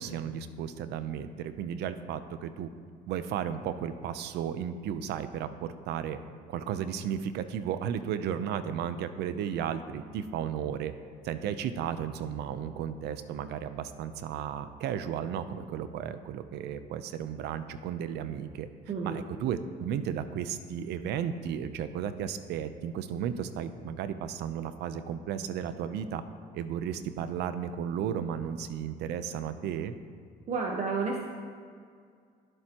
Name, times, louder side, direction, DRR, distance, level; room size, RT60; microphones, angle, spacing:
voice 1, 0.0-2.7 3.1-6.2 6.5-10.9 11.2-18.7 19.0-26.2 26.5-29.9, right 8 dB, 80° right, 11 dB, 0.7 m, -34 dB
voice 2, 18.9-19.2 30.5-31.3, right 4 dB, 45° right, 0 dB, 1.1 m, -31 dB
21.5 x 8.0 x 3.0 m, 2.1 s
cardioid pair, 110°, 17 cm